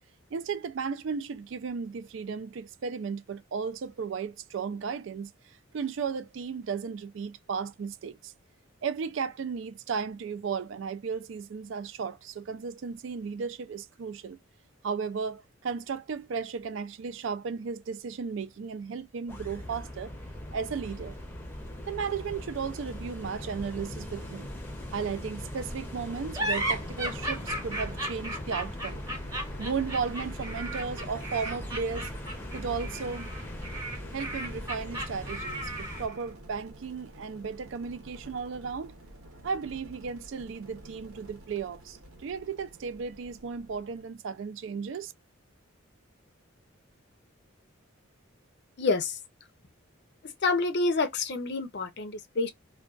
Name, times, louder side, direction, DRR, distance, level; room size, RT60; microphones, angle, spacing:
voice 1, 0.3-5.3 5.7-8.3 8.8-14.4 14.8-20.1 20.5-21.1 21.9-24.5 24.9-29.0 29.6-32.1 32.5-33.3 34.1-38.9 39.4-45.1, right 5 dB, 65° right, 0.4 m, -35 dB
sound 1, 19.3-36.1, left 1 dB, 10° left, 0.6 m, -40 dB
sound 2, 26.3-36.2, right 1 dB, 15° right, 0.9 m, -35 dB
sound 3, 29.1-44.0, right 1 dB, 85° right, 0.9 m, -50 dB
voice 2, 48.8-49.2 50.4-52.5, left 3 dB, 55° left, 0.5 m, -28 dB
2.3 x 2.2 x 2.3 m
head